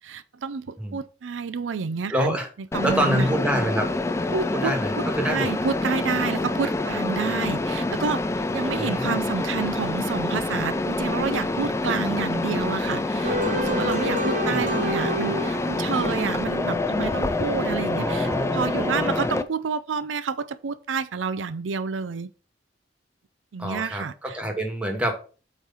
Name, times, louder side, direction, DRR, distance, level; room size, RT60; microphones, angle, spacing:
voice 1, 0.0-2.4 2.7-3.3 4.3-8.2 8.5-22.3 23.5-24.4, right 5 dB, 90° right, 0.5 m, -29 dB
voice 2, 2.1-2.5 2.8-3.9 4.5-5.5 8.8-9.2 14.4-14.7 17.9-19.3 23.6-25.1, equal, 5° right, 1.6 m, -27 dB
Mechanisms, 2.7-19.4, left 2 dB, 15° left, 0.4 m, -26 dB
sound 1, 13.2-16.5, equal, 45° right, 1.2 m, -29 dB
8.2 x 3.2 x 5.5 m
head